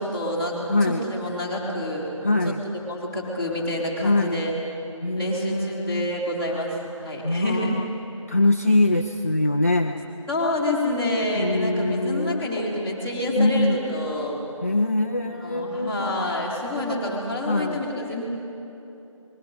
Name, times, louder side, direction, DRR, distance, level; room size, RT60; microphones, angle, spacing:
voice 1, 0.0-2.1 2.4-4.5 5.1-7.7 10.3-14.4 15.2-18.2, left 1 dB, 10° right, -7 dB, 2.8 m, -28 dB
voice 2, 0.7-1.1 2.2-2.6 4.0-4.4 5.0-6.1 7.2-7.9 8.3-10.0 11.4-12.5 13.4-13.8 14.6-16.2 17.5-17.9, left 2 dB, 25° left, 3 dB, 0.5 m, -23 dB
27.0 x 21.0 x 5.4 m, 3.0 s
figure-of-eight pair, 170°, 17 cm